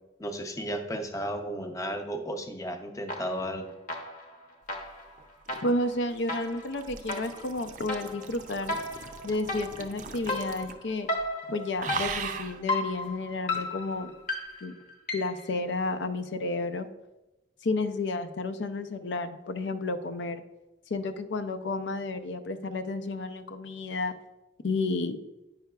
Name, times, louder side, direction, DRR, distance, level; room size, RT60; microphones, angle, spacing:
voice 1, 0.2-3.7, equal, 20° left, 5 dB, 0.6 m, -34 dB
sound 1, 3.1-3.6 3.9-15.5, left 2 dB, 50° left, 0.8 m, -35 dB
sound 2, 5.2-10.9 11.2-11.4 11.8-12.6 13.5-13.7, right 5 dB, 45° right, 0.4 m, -39 dB
voice 2, 5.6-8.8 9.2-11.1 11.5-14.1 14.6-14.7 15.1-16.9 17.6-20.4 20.9-24.1 24.6-25.2, left 2 dB, 90° left, 8 dB, 0.6 m, -31 dB
9.0 x 5.7 x 2.3 m, 0.98 s
head